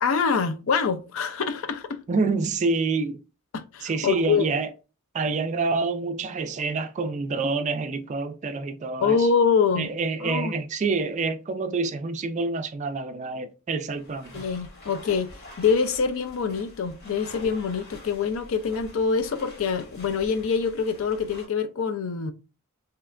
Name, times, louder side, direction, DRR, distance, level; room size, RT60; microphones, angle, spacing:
voice 1, 0.0-2.0 3.5-4.5 9.0-9.9 10.2-10.5 14.3-15.3 15.6-22.3, left 5 dB, 65° left, 0.5 m, -25 dB
voice 2, 2.1-3.2 3.8-4.7 5.1-9.3 9.7-14.4, right 4 dB, 35° right, 0.3 m, -27 dB
sound 1, 13.9-21.5, left 1 dB, 50° left, 1.2 m, -46 dB
3.2 x 2.8 x 2.4 m
head